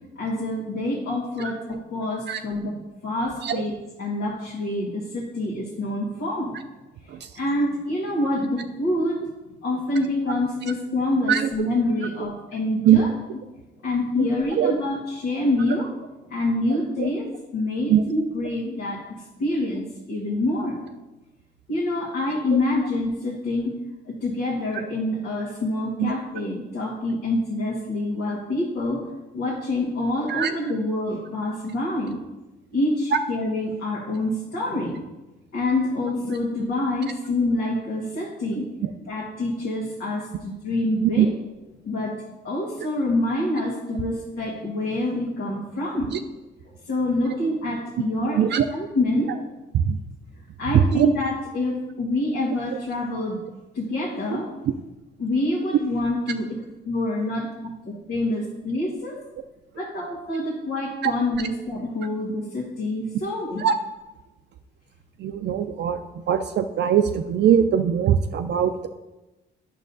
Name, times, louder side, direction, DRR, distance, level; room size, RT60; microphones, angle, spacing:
voice 1, 0.1-2.8 3.0-6.5 7.3-9.2 9.6-13.1 13.8-15.9 16.3-17.3 17.5-20.8 21.7-23.7 24.0-29.0 29.3-32.2 32.7-35.0 35.5-38.7 39.1-41.3 41.8-42.1 42.4-46.1 46.6-48.4 48.7-49.5 50.6-53.4 53.7-54.5 55.2-59.2 59.7-63.6, left 1 dB, 85° left, -5 dB, 1.6 m, -26 dB
voice 2, 50.7-51.1 61.0-61.1 63.6-63.7 65.2-66.0 66.3-68.9, right 9 dB, 60° right, 7 dB, 0.4 m, -20 dB
9.2 x 6.3 x 2.7 m, 1.1 s
cardioid pair, 90°, 20 cm